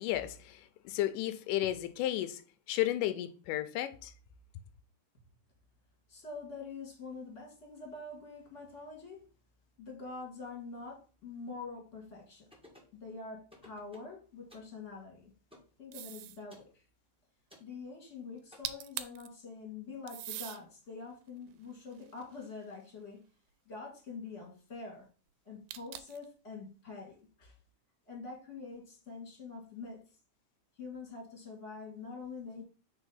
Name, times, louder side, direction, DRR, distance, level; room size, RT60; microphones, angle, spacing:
voice 1, 0.0-2.4 2.7-4.1, left 13 dB, 85° left, 2.1 m, -33 dB
voice 2, 6.1-9.2 9.8-12.5 12.9-15.3 15.8-16.8 17.6-23.2 23.6-25.1 25.4-27.6 28.1-30.0 30.8-32.6, left 4 dB, 30° left, 1.7 m, -45 dB
sound 1, 12.5-13.0 13.5-14.1 14.5-14.7 15.5-15.7 16.5-16.7 17.5-17.7 18.5-18.6, left 1 dB, 5° right, 0.7 m, -56 dB
sound 2, 15.9-16.4 18.4-18.5 18.6-19.3 20.1-20.6 21.3-22.7 25.7-26.3, right 13 dB, 85° right, 2.2 m, -42 dB
4.4 x 4.3 x 5.5 m
omnidirectional pair, 3.8 m